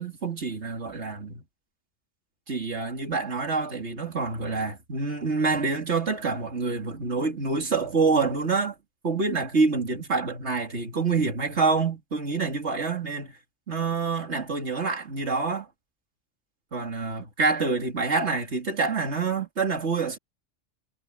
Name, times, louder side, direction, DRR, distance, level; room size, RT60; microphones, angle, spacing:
voice 1, 0.0-1.4 2.5-8.7 9.0-13.3 13.7-15.7 16.7-20.2, right 4 dB, 55° right, 3.1 m, -27 dB
omnidirectional pair, 1.4 m